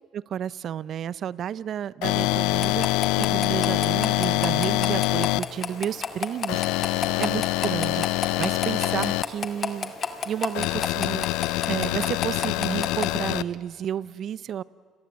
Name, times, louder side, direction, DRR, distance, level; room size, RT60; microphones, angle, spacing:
voice 1, 0.1-2.9 3.2-9.9 10.2-11.3 11.6-14.6, right 9 dB, 50° right, 20 dB, 0.7 m, -31 dB
sound 1, 2.0-5.4 6.5-9.2 10.5-13.4, left 17 dB, 80° left, 0.6 m, -25 dB
sound 2, 2.5-13.2, left 5 dB, 35° left, 2.2 m, -34 dB
29.0 x 21.5 x 8.2 m, 2.1 s
cardioid pair, 100°, 0 cm